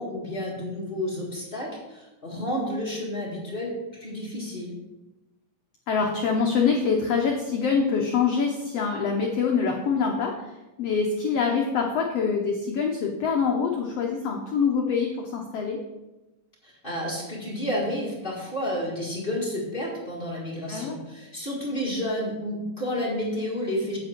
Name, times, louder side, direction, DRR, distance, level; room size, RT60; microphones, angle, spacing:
voice 1, 0.0-4.7 16.6-24.0, equal, 25° left, -5 dB, 1.1 m, -31 dB
voice 2, 5.9-10.4 10.8-15.8 20.7-21.0, left 5 dB, 90° left, 1 dB, 1.4 m, -25 dB
8.6 x 7.7 x 4.4 m, 1.0 s
omnidirectional pair, 4.0 m